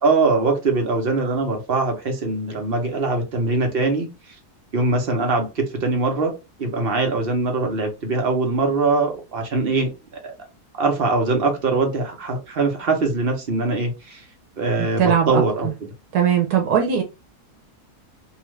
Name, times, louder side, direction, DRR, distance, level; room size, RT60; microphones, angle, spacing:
voice 1, 0.0-4.1 4.7-6.3 6.6-9.9 10.2-10.3 10.8-14.2 14.6-15.7, right 3 dB, 45° right, 0.9 m, -22 dB
voice 2, 14.8-15.4 16.1-17.0, right 8 dB, 85° right, 1.2 m, -19 dB
2.8 x 2.4 x 3.0 m
omnidirectional pair, 1.6 m